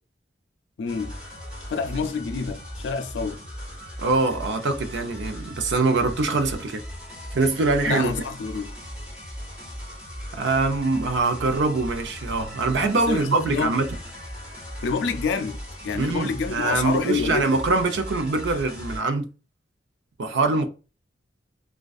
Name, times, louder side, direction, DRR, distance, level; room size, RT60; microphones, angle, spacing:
voice 1, 0.8-1.2 1.7-3.4 7.9-8.8 13.1-13.7 14.8-17.6, left 5 dB, 85° left, 0.4 m, -28 dB
sound 1, 0.9-19.0, equal, 5° right, 1.1 m, -38 dB
voice 2, 4.0-6.8 7.3-8.1 10.3-13.9 15.9-19.3 20.2-20.7, right 3 dB, 75° right, 0.5 m, -23 dB
2.5 x 2.2 x 2.3 m
head